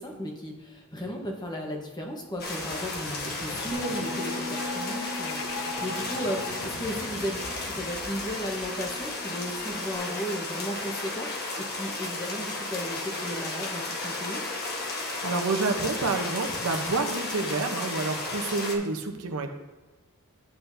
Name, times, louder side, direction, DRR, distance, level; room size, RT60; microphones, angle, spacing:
voice 1, 0.0-14.4, equal, 20° left, 0 dB, 1.1 m, -35 dB
sound 1, 2.4-10.0, left 3 dB, 65° left, 0.6 m, -41 dB
sound 2, 2.4-18.8, left 2 dB, 45° left, 1.3 m, -34 dB
Bass guitar, 3.7-10.0, left 1 dB, 20° right, 0.6 m, -41 dB
voice 2, 15.0-19.5, right 3 dB, 85° right, 4 dB, 0.9 m, -29 dB
9.5 x 8.0 x 2.7 m, 1.2 s
head